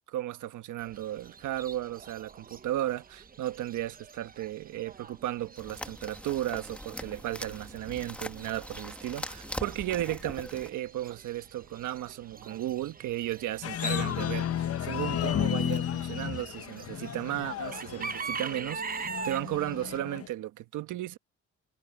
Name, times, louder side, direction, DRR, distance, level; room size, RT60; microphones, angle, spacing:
voice 1, 0.1-21.2, right 13 dB, 80° right, 1.2 m, -35 dB
Chicken rooster / Bird, 0.8-20.0, right 5 dB, 30° right, 0.9 m, -44 dB
sound 1, 5.6-10.7, left 1 dB, 5° left, 1.7 m, -41 dB
sound 2, 13.6-20.3, left 10 dB, 50° left, 0.9 m, -33 dB
cardioid pair, 90°, 30 cm